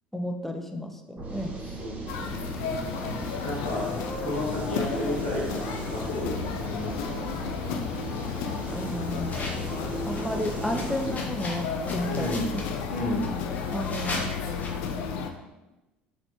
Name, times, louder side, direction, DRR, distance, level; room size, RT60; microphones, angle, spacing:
voice 1, 0.1-1.6 8.7-9.5 10.0-12.6 13.7-14.3, equal, 5° left, 4 dB, 0.5 m, -32 dB
sound 1, 1.2-11.2, right 1 dB, 30° right, 0.8 m, -36 dB
voice 2, 1.5-2.0 2.3-2.5 3.4-3.9 4.2-5.5 5.8-7.4 12.1-12.6 12.9-13.3, left 1 dB, 85° left, -11 dB, 1.0 m, -32 dB
sound 2, 2.1-15.3, left 6 dB, 65° left, 0.4 m, -33 dB
sound 3, 9.1-14.9, left 2 dB, 30° left, 0.8 m, -40 dB
4.1 x 2.9 x 2.9 m, 1.0 s
figure-of-eight pair, 60°, 5 cm